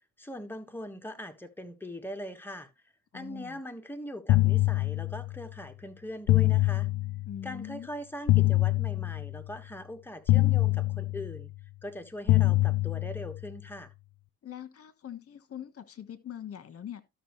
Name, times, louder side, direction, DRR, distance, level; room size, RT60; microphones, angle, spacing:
voice 1, 0.2-2.7 3.1-6.9 7.4-11.5 11.8-13.9, left 1 dB, 5° left, 1.4 m, -41 dB
voice 2, 3.1-3.6 7.3-7.9 14.4-17.0, left 10 dB, 50° left, 1.3 m, -42 dB
sound 1, 4.3-5.5 6.3-7.5 8.3-9.5 10.3-11.5 12.3-13.5, left 18 dB, 70° left, 0.5 m, -25 dB
12.5 x 6.3 x 3.1 m
cardioid pair, 90°, 30 cm